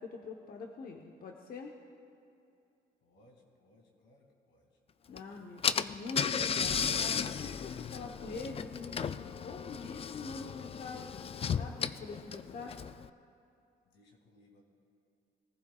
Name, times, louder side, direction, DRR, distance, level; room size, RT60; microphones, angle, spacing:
voice 1, 0.0-1.7 5.1-9.0 9.4-11.3 11.5-12.7, left 4 dB, 55° left, 1 dB, 1.0 m, -44 dB
voice 2, 3.0-4.8 13.9-14.6, left 1 dB, 85° left, 1 dB, 2.4 m, -64 dB
Car / Engine, 5.2-5.3 5.6-13.1, left 7 dB, 35° left, 0.4 m, -35 dB
22.5 x 15.0 x 2.4 m, 2.5 s
cardioid pair, 95°, 17 cm